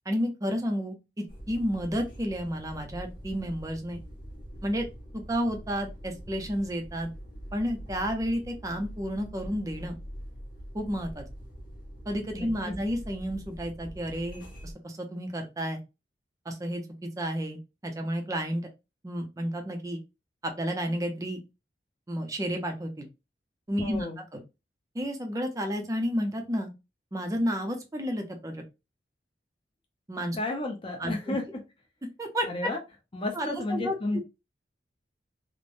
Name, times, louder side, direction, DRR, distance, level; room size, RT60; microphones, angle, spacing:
voice 1, 0.1-4.0 4.6-4.9 5.1-7.1 7.5-10.0 10.7-11.2 12.1-15.8 16.5-18.7 19.0-20.0 20.4-21.4 22.1-23.1 23.7-24.1 24.3-24.4 24.9-26.7 27.1-28.6 30.1-30.4 31.0-31.4 32.2-32.5 33.3-33.9, equal, 20° right, 4 dB, 0.5 m, -31 dB
sound 1, 1.3-14.7, equal, 50° left, 1.1 m, -44 dB
voice 2, 23.8-24.2 30.3-31.4 32.5-32.8 33.1-34.2, left 2 dB, 30° left, 2 dB, 0.7 m, -32 dB
3.2 x 2.1 x 2.5 m, 0.26 s
head